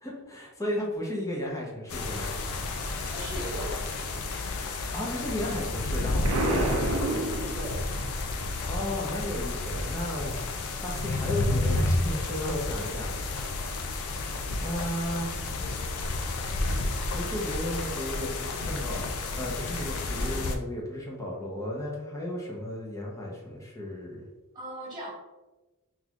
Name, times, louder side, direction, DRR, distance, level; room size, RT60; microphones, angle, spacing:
voice 1, 0.0-2.3 4.9-7.3 8.7-10.5 10.8-13.5 14.6-15.3 17.1-19.1 19.3-24.2, left 1 dB, 15° left, -3 dB, 0.7 m, -34 dB
sound 1, 1.9-20.6, left 2 dB, 90° left, 0.4 m, -31 dB
voice 2, 3.0-4.2 7.5-7.8 24.5-25.1, right 1 dB, 20° right, -5 dB, 1.2 m, -38 dB
Explosion, 6.2-8.1, right 2 dB, 75° right, 0.5 m, -29 dB
3.8 x 2.9 x 2.4 m, 1.1 s
head